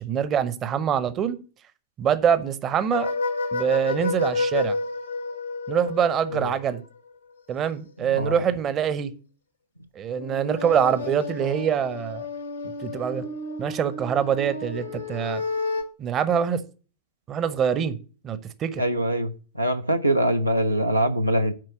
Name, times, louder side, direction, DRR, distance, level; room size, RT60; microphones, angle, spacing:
voice 1, 0.0-1.4 2.0-3.1 3.5-4.8 5.7-6.8 7.5-9.1 9.9-12.3 12.8-13.2 13.6-15.4 16.0-16.6 17.3-18.0 18.2-18.8, right 8 dB, 30° right, 0.8 m, -24 dB
sound 1, 2.9-6.8 10.1-15.8, left 3 dB, 80° left, 1.5 m, -30 dB
voice 2, 8.0-8.4 18.8-21.5, right 1 dB, 90° right, 0.6 m, -23 dB
7.7 x 4.6 x 7.1 m
figure-of-eight pair, 90°, 0 cm